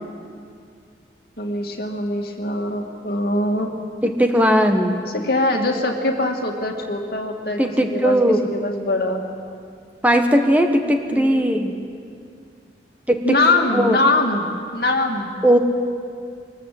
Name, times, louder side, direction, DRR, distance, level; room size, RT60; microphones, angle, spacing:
voice 1, 1.4-3.7 5.1-9.3 11.1-11.5 13.2-14.5 14.7-15.3, left 2 dB, 55° left, 2 dB, 2.4 m, -22 dB
voice 2, 4.0-5.1 7.6-8.4 10.0-11.7 13.1-13.4 13.7-14.0 15.4-15.6, equal, 10° right, 4 dB, 1.1 m, -18 dB
23.0 x 20.0 x 7.7 m, 2.3 s
head